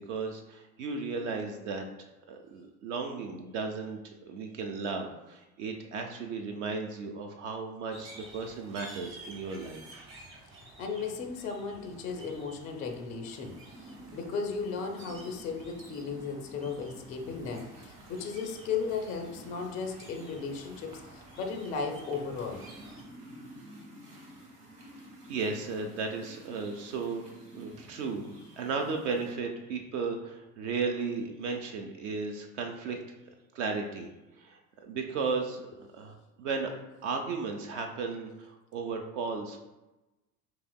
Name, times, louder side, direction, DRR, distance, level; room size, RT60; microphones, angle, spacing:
voice 1, 0.1-1.9 2.3-10.1 25.3-27.2 27.5-33.0 33.5-34.1 34.4-36.7 37.0-39.6, right 4 dB, 50° right, 4 dB, 0.6 m, -35 dB
sound 1, 7.9-23.0, right 2 dB, 30° right, 0.9 m, -52 dB
voice 2, 10.8-22.6, left 5 dB, 20° left, 3 dB, 0.3 m, -36 dB
sound 2, 13.3-29.4, right 1 dB, 85° right, 0.8 m, -52 dB
4.8 x 2.8 x 2.2 m, 1.0 s
figure-of-eight pair, 70°, 45 cm